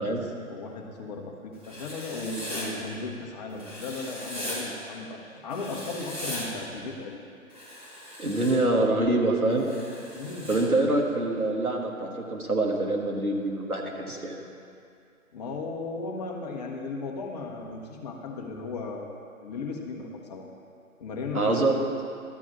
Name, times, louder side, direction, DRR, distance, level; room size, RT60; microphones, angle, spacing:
voice 1, 0.0-7.2 10.1-10.5 15.3-20.5 21.0-21.7, left 3 dB, 30° left, 1 dB, 1.0 m, -36 dB
Writing, 1.6-2.6 3.6-4.6 5.5-6.4 7.5-8.5 9.6-10.6, left 1 dB, 15° right, 2.3 m, -39 dB
voice 2, 8.2-9.7 10.5-14.4 21.3-21.8, right 2 dB, 85° right, 0 dB, 1.6 m, -25 dB
12.5 x 4.8 x 7.2 m, 2.4 s
figure-of-eight pair, 130°, 42 cm